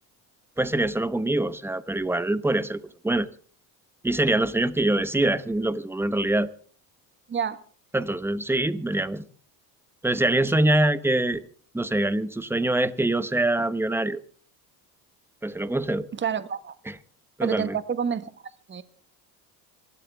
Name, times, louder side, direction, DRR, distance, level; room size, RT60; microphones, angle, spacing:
voice 1, 0.6-3.3 4.0-6.5 7.9-9.2 10.0-11.4 11.7-14.2 15.4-16.1 16.9-17.0 17.4-17.8, right 1 dB, 5° right, 0.9 m, -24 dB
voice 2, 16.1-16.7 17.4-18.3 18.7-18.8, right 7 dB, 25° right, 1.3 m, -28 dB
26.5 x 12.5 x 3.5 m
supercardioid pair, 95°, 41 cm